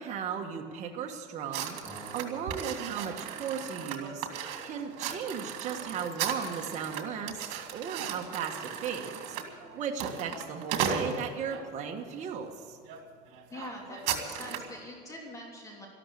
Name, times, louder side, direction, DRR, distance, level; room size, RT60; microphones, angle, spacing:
voice 1, 0.0-12.8, right 7 dB, 45° right, 2 dB, 1.5 m, -36 dB
sound 1, 1.5-11.6 12.3-12.5 12.8-13.0 13.3-14.8, right 8 dB, 80° right, 2.2 m, -36 dB
Acoustic guitar, 1.8-5.1, right 1 dB, 10° right, 3.4 m, -53 dB
voice 2, 13.5-15.9, left 1 dB, 20° left, -1 dB, 3.1 m, -44 dB
13.5 x 12.5 x 8.3 m, 2.3 s
cardioid pair, 135°, 17 cm